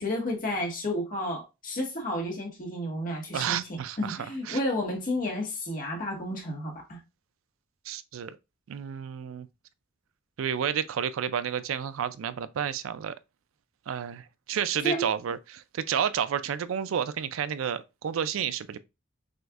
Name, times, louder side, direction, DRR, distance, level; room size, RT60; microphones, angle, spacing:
voice 1, 0.0-7.0 14.8-15.1, left 1 dB, 45° left, 1.4 m, -31 dB
voice 2, 3.3-4.2 4.5-4.6 7.9-8.4 8.7-9.5 10.4-13.2 13.9-18.8, right 8 dB, 85° right, 0.4 m, -31 dB
6.3 x 2.6 x 2.4 m
head